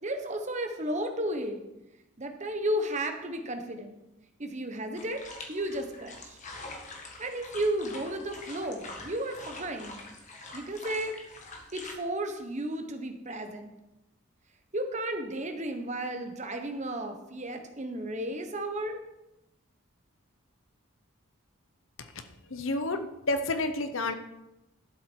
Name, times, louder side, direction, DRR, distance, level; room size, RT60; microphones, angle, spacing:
voice 1, 0.0-1.6 2.2-4.0 4.4-5.2 5.5-6.4 7.2-10.0 10.5-11.2 11.7-13.7 14.7-19.0, right 1 dB, 35° right, 5 dB, 1.1 m, -33 dB
sound 1, 5.0-11.9, left 2 dB, 35° left, 1.5 m, -45 dB
voice 2, 22.5-24.2, left 2 dB, 70° left, 8 dB, 1.0 m, -30 dB
11.5 x 7.6 x 4.6 m, 0.95 s
head